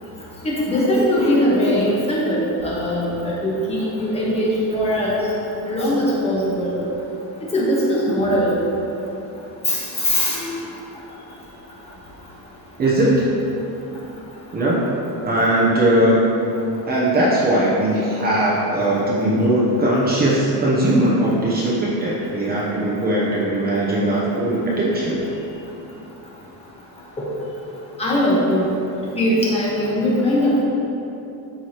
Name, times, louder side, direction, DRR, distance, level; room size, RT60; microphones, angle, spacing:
voice 1, 0.4-5.2 5.7-6.8 7.5-8.6 9.7-10.4 28.0-28.7 29.1-30.6, equal, 15° left, -6 dB, 1.2 m, -20 dB
voice 2, 12.8-13.2 14.5-14.8 15.2-16.3 16.9-25.2, right 1 dB, 25° right, -6 dB, 0.8 m, -19 dB
12.5 x 4.7 x 2.9 m, 3.0 s
cardioid pair, 175°, 41 cm